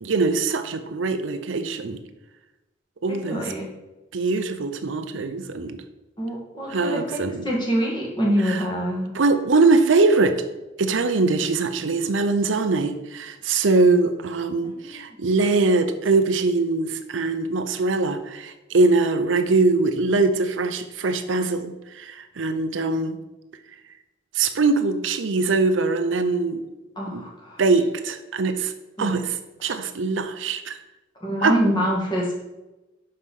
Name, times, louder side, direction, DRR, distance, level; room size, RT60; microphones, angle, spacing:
voice 1, 0.0-2.0 3.0-3.4 4.1-5.8 6.7-7.4 8.5-8.6 9.1-10.4 10.8-23.2 24.3-26.6 27.1-27.2 27.6-28.7 29.0-30.8 31.4-31.6, right 3 dB, 75° right, 8 dB, 0.6 m, -22 dB
voice 2, 3.1-3.6 6.2-9.1 14.6-15.2 27.0-27.6 29.0-29.1 31.2-32.4, equal, 25° left, -3 dB, 2.0 m, -25 dB
5.5 x 5.5 x 6.3 m, 1.0 s
head